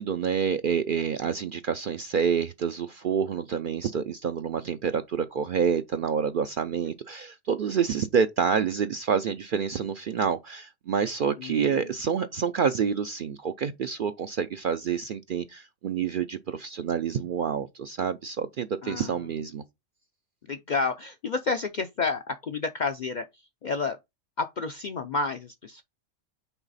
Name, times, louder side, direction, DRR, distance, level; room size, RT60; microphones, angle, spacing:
voice 1, 0.0-19.6, right 7 dB, 65° right, 0.5 m, -28 dB
voice 2, 11.4-11.9 18.8-19.2 20.5-23.3 23.6-24.0 24.4-25.8, left 4 dB, 60° left, 0.5 m, -30 dB
5.9 x 4.0 x 4.0 m
omnidirectional pair, 1.3 m